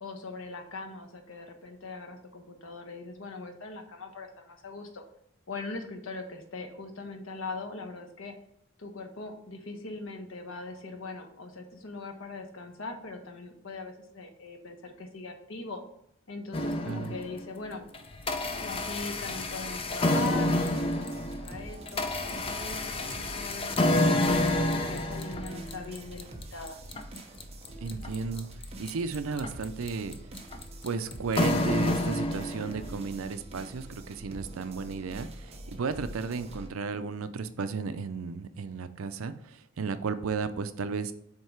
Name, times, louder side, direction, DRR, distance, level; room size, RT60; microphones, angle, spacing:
voice 1, 0.0-5.0 5.5-8.3 8.8-15.8 16.3-17.8 18.6-22.1 22.5-26.8, left 3 dB, 70° left, 4 dB, 0.9 m, -41 dB
sound 1, 16.5-17.5 17.9-33.0, left 1 dB, 25° left, 0.4 m, -29 dB
sound 2, 20.2-36.7, right 1 dB, 30° right, 0.7 m, -45 dB
voice 2, 27.8-28.5 28.8-30.2 30.8-41.1, right 4 dB, 75° right, 11 dB, 0.5 m, -34 dB
7.5 x 2.8 x 4.6 m, 0.75 s
head